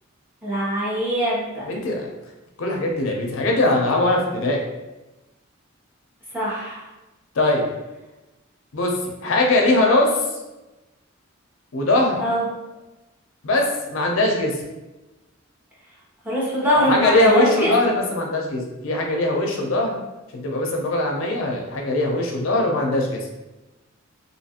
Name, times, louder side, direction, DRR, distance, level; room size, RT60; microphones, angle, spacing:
voice 1, 0.4-1.7 6.3-6.8 12.2-12.4 16.2-17.7, equal, 10° right, -8 dB, 0.8 m, -22 dB
voice 2, 1.6-2.1 2.6-4.6 7.3-7.7 8.7-10.2 11.7-12.2 13.4-14.6 16.7-19.9 20.3-23.3, left 2 dB, 70° left, 1 dB, 0.5 m, -21 dB
2.7 x 2.4 x 2.8 m, 1.0 s
head